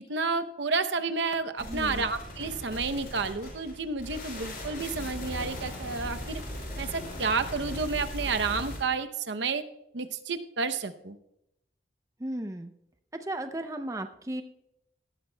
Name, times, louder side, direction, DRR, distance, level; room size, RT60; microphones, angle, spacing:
voice 1, 0.1-6.4 6.8-9.6 9.9-11.2, right 4 dB, 75° right, 8 dB, 0.7 m, -30 dB
sound 1, 1.6-8.8, left 1 dB, 50° left, 5.5 m, -38 dB
voice 2, 1.7-2.1 12.2-12.7 13.3-14.4, right 1 dB, 15° right, 7 dB, 0.5 m, -35 dB
18.5 x 13.0 x 2.2 m, 0.81 s
head